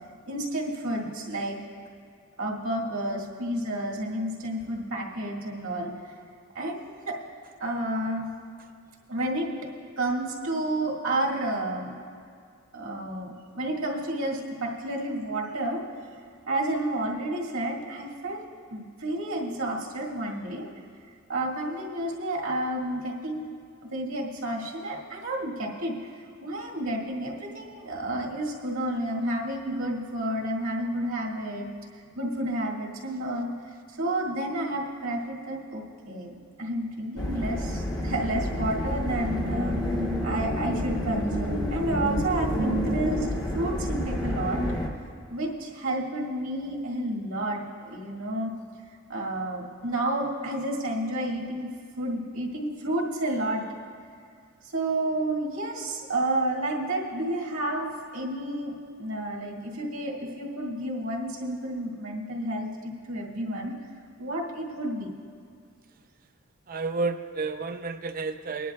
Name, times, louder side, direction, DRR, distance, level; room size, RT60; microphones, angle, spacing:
voice 1, 0.3-1.6 2.4-5.9 6.5-7.1 7.6-8.3 9.1-9.5 10.0-11.9 12.7-15.8 16.5-18.4 18.7-20.7 21.3-23.5 23.8-26.0 26.4-31.7 32.1-33.5 34.0-39.8 40.2-43.3 43.5-44.6 45.3-48.5 49.1-51.7 52.0-53.6 54.7-63.7 64.2-65.1, right 1 dB, 75° right, -3 dB, 1.9 m, -30 dB
sound 1, 37.2-44.9, equal, 20° left, 0.9 m, -29 dB
voice 2, 66.7-68.7, right 3 dB, 40° right, 7 dB, 0.5 m, -31 dB
23.0 x 10.5 x 2.3 m, 2.2 s
head